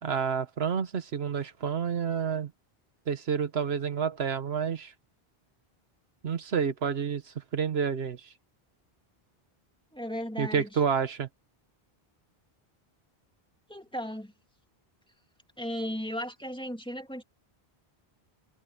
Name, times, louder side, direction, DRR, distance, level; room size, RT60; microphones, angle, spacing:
voice 1, 0.0-2.5 3.1-4.9 6.2-8.3 10.4-11.3, right 6 dB, 80° right, 1.3 m, -29 dB
voice 2, 9.9-10.8 13.7-14.3 15.6-17.2, equal, 5° left, 2.3 m, -35 dB
omnidirectional pair, 1.0 m